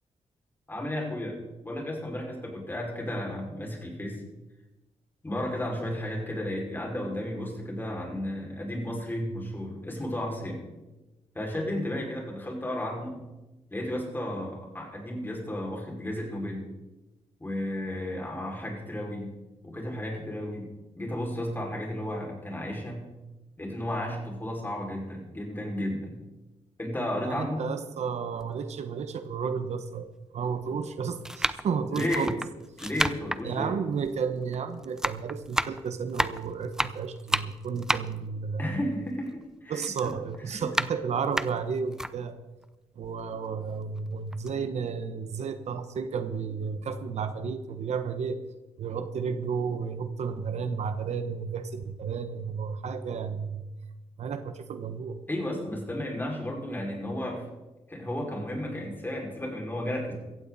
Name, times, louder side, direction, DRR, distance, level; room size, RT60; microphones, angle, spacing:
voice 1, 0.7-1.4 1.6-4.2 5.2-10.7 11.3-13.2 13.7-16.7 17.4-19.3 19.6-20.7 21.0-23.1 23.6-26.2 26.8-27.6 31.9-32.3 32.8-33.7 38.6-40.1 40.5-40.7 55.3-57.4 57.9-60.1, left 1 dB, 15° left, -1 dB, 5.6 m, -33 dB
voice 2, 27.2-30.1 30.3-32.3 33.4-38.7 39.7-42.4 43.0-48.4 48.8-53.6 54.2-55.2, right 6 dB, 75° right, 9 dB, 1.1 m, -32 dB
sound 1, 28.4-28.5 29.4-29.5 30.5-30.7 31.2-34.6 34.8-39.4 39.7-42.1 42.6-42.7 43.0-44.0 44.3-44.5, right 1 dB, 5° right, 0.6 m, -31 dB
16.0 x 15.0 x 4.2 m, 1.0 s
cardioid pair, 90°, 12 cm